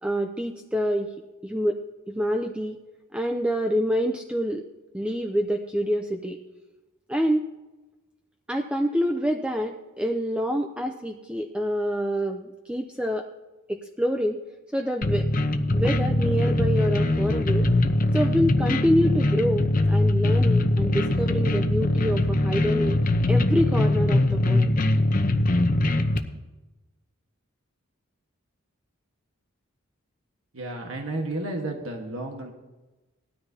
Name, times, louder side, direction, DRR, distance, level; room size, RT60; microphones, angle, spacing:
voice 1, 0.0-1.1 1.4-1.8 2.1-2.8 3.1-4.6 4.9-6.4 7.1-7.5 8.5-13.3 13.7-14.4 14.7-15.3 15.7-17.7 18.1-24.7, equal, 5° right, 4 dB, 0.5 m, -26 dB
sound 1, 15.0-26.2, left 1 dB, 40° left, 0.8 m, -22 dB
voice 2, 30.5-32.5, right 2 dB, 80° right, 1 dB, 1.5 m, -32 dB
19.0 x 13.0 x 2.8 m, 1.1 s
head